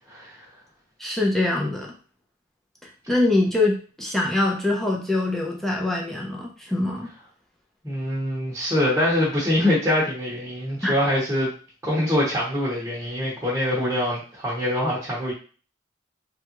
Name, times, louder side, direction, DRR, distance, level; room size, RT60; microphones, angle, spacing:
voice 1, 1.0-1.9 3.1-7.1 10.8-10.9, left 2 dB, ahead, -2 dB, 0.7 m, -23 dB
voice 2, 7.8-11.5 11.8-15.3, left 1 dB, 15° right, -6 dB, 1.0 m, -24 dB
3.3 x 2.4 x 3.0 m, 0.38 s
head